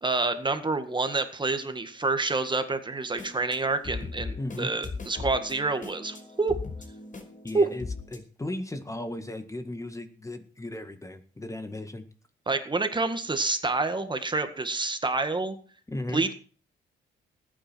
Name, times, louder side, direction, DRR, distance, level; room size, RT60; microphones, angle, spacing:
voice 1, 0.0-6.6 7.5-7.7 12.5-15.6 16.1-16.3, right 3 dB, 25° right, 9 dB, 1.9 m, -28 dB
sound 1, 3.0-8.2, left 4 dB, 40° left, 5.1 m, -39 dB
voice 2, 4.4-4.7 7.4-12.0 15.9-16.2, left 1 dB, 15° left, 9 dB, 1.8 m, -36 dB
19.0 x 9.2 x 4.6 m, 0.40 s
cardioid pair, 90°, 20 cm